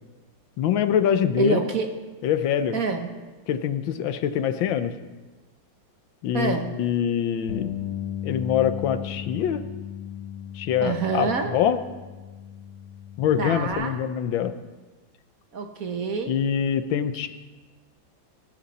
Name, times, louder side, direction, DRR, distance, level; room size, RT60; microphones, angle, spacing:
voice 1, 0.6-1.6 2.2-2.8 3.5-4.9 6.2-7.7 8.2-9.6 10.5-11.8 13.2-14.5 16.3-17.3, left 9 dB, 80° left, 11 dB, 1.5 m, -24 dB
voice 2, 1.4-1.9 2.7-3.1 6.3-6.7 10.8-11.5 13.4-14.0 15.5-16.4, right 5 dB, 50° right, 5 dB, 1.4 m, -27 dB
Bass guitar, 7.5-13.7, left 10 dB, 35° left, 4.5 m, -36 dB
18.0 x 13.0 x 4.2 m, 1.3 s
omnidirectional pair, 2.1 m